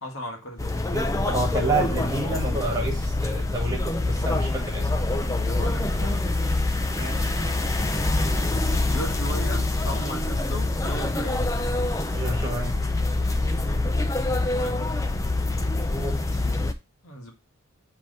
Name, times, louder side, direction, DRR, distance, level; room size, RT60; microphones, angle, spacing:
voice 1, 0.0-0.8 5.4-6.3 8.7-11.4 14.5-15.0 17.0-17.3, equal, 65° left, 1.8 m, -36 dB
sound 1, 0.6-16.7, left 2 dB, 15° left, 0.4 m, -25 dB
voice 2, 0.9-4.9 7.0-7.3 12.1-12.7 15.9-16.4, right 2 dB, 20° right, 1.6 m, -29 dB
7.4 x 3.3 x 4.0 m
head